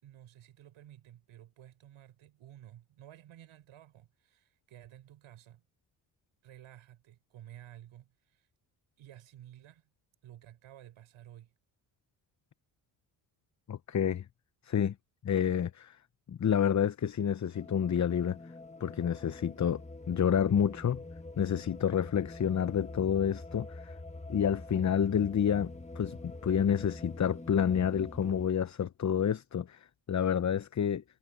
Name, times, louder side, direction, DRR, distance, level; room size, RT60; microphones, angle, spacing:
voice 1, 0.0-5.6 6.4-8.5 9.0-9.9 10.2-11.5, right 12 dB, 75° right, 5.9 m, -53 dB
voice 2, 13.7-14.2 14.6-14.9 15.2-16.0 16.3-18.4 18.8-19.8 20.1-21.0 21.4-23.9 24.3-31.0, left 8 dB, 35° left, 0.9 m, -29 dB
sound 1, 17.5-28.5, left 2 dB, 15° left, 1.9 m, -45 dB
supercardioid pair, 70°, 49 cm